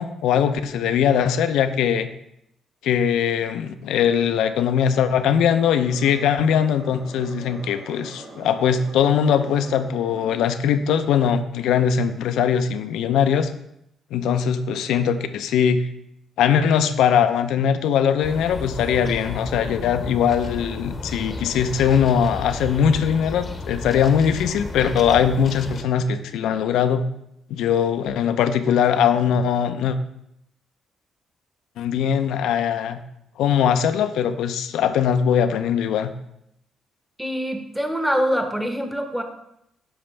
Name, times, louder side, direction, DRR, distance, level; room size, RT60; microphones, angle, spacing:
voice 1, 0.0-2.1 2.8-13.5 14.1-15.9 16.4-27.0 27.5-30.0 31.8-33.0 33.4-36.1, left 8 dB, 85° left, 10 dB, 0.6 m, -21 dB
sound 1, 5.2-10.5, right 2 dB, 55° right, 1.6 m, -42 dB
sound 2, 18.2-25.8, left 3 dB, 30° left, 0.9 m, -33 dB
voice 2, 37.2-39.2, equal, 5° right, 5 dB, 1.1 m, -24 dB
8.9 x 5.9 x 3.3 m, 0.80 s
cardioid pair, 90°, 0 cm